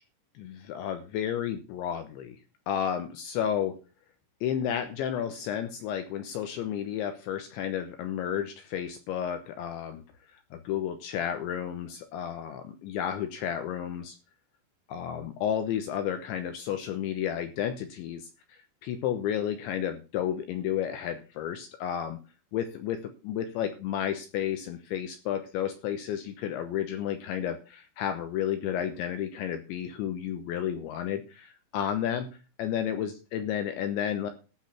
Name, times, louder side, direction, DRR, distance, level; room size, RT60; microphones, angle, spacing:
voice 1, 0.4-2.4 2.7-3.7 4.4-10.0 10.5-14.2 14.9-22.2 22.5-34.3, left 9 dB, 75° left, 8 dB, 3.0 m, -32 dB
15.0 x 6.5 x 6.1 m, 0.33 s
omnidirectional pair, 5.9 m